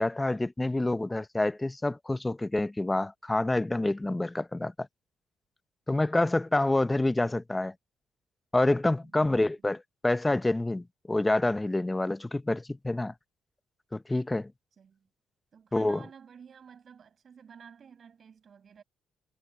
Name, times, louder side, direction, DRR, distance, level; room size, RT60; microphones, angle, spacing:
voice 1, 0.0-4.9 5.9-7.7 8.5-13.1 13.9-14.5 15.7-16.0, left 2 dB, 15° left, 0.7 m, -27 dB
voice 2, 9.0-9.6 14.8-15.1 15.5-18.8, right 7 dB, 50° right, 6.2 m, -52 dB
cardioid pair, 90°, 0 cm